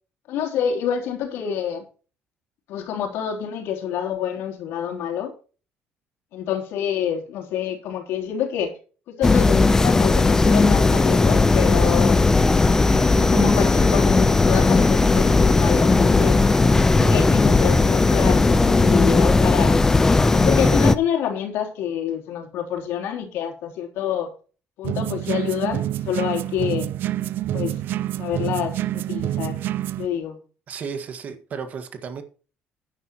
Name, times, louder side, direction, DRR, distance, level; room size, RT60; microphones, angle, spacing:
voice 1, 0.3-1.8 2.7-5.3 6.3-8.7 9.1-12.2 13.1-16.4 16.9-19.9 20.3-24.3 24.8-26.9 27.5-27.8 28.2-29.6 30.0-30.4, left 9 dB, 80° left, 3.3 m, -27 dB
sound 1, 9.2-20.9, left 3 dB, 15° left, 0.5 m, -17 dB
sound 2, 24.8-30.1, right 13 dB, 60° right, 0.5 m, -27 dB
voice 2, 30.7-32.2, right 6 dB, 40° right, 1.6 m, -33 dB
12.0 x 9.9 x 3.0 m
cardioid pair, 150°, 4 cm